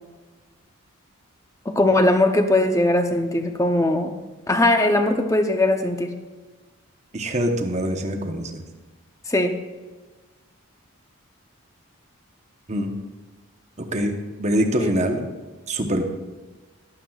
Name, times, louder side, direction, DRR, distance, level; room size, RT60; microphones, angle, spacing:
voice 1, 1.7-4.2 4.5-6.1 9.3-9.6 14.8-14.9, left 1 dB, 15° left, 6 dB, 0.7 m, -20 dB
voice 2, 7.1-8.6 12.7-12.9 13.9-14.1 14.4-15.3 15.7-16.0, equal, 30° right, 4 dB, 1.0 m, -24 dB
15.0 x 11.0 x 2.4 m, 1.3 s
head